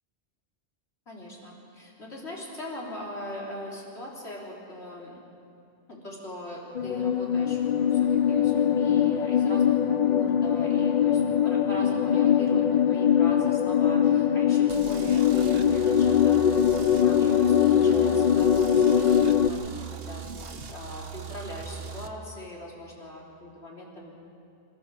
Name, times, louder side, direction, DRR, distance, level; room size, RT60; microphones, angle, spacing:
voice 1, 1.1-5.2 5.9-19.1 19.4-24.1, left 1 dB, 80° left, -4 dB, 3.9 m, -41 dB
sound 1, 6.7-19.5, left 9 dB, 50° left, 0.6 m, -22 dB
sound 2, 14.7-22.1, right 6 dB, 65° right, 1.2 m, -40 dB
27.5 x 14.0 x 6.9 m, 2.4 s
omnidirectional pair, 1.1 m